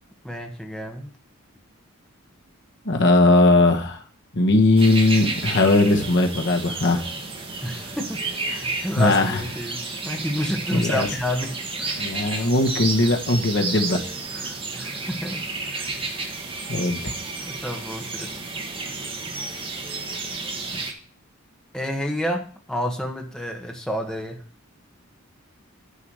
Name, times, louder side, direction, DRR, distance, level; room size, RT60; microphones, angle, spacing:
voice 1, 0.2-1.1 7.6-12.1 14.3-15.9 17.5-18.4 21.7-24.4, equal, 5° left, 1.4 m, -30 dB
voice 2, 2.8-4.0 4.3-7.0 9.0-9.4 10.7-11.1 12.0-14.0 16.7-17.0, left 2 dB, 55° left, 1.3 m, -19 dB
sound 1, 4.8-20.9, right 3 dB, 25° right, 1.6 m, -31 dB
9.9 x 4.9 x 6.2 m
head